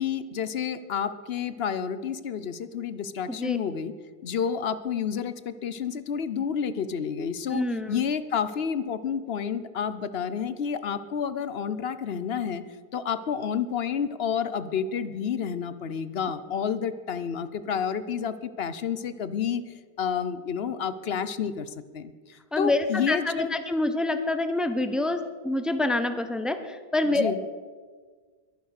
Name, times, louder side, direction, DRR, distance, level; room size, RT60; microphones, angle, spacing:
voice 1, 0.0-3.9 4.2-12.6 12.9-23.5 27.1-27.4, left 7 dB, 75° left, 13 dB, 1.0 m, -30 dB
voice 2, 7.5-8.0 22.5-27.5, left 2 dB, ahead, 9 dB, 0.9 m, -27 dB
22.0 x 9.4 x 6.5 m, 1.5 s
omnidirectional pair, 1.0 m